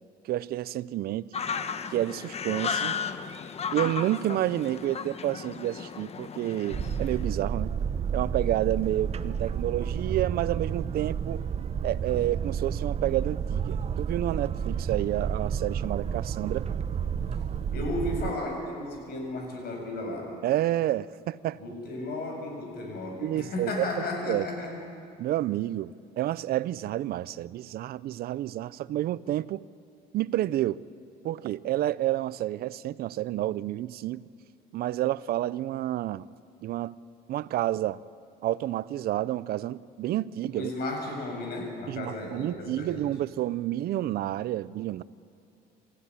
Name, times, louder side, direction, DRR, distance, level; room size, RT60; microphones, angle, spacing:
voice 1, 0.3-1.3 1.9-3.0 3.7-7.7 8.1-11.4 11.8-16.7 20.4-21.6 23.2-23.9 24.3-24.5 25.2-29.6 30.1-30.8 31.2-34.2 34.7-36.3 36.6-36.9 37.3-38.0 38.4-40.7 41.9-45.0, right 14 dB, 65° right, 19 dB, 0.6 m, -29 dB
sound 1, 1.3-7.3, left 6 dB, 40° left, 1.2 m, -34 dB
Boat Water vehicle, 6.7-18.3, right 7 dB, 40° right, 0.8 m, -31 dB
voice 2, 17.7-20.3 21.6-24.7 40.5-43.0, left 2 dB, 65° left, 1 dB, 7.5 m, -34 dB
26.5 x 15.0 x 9.9 m, 2.6 s
cardioid pair, 110°, 17 cm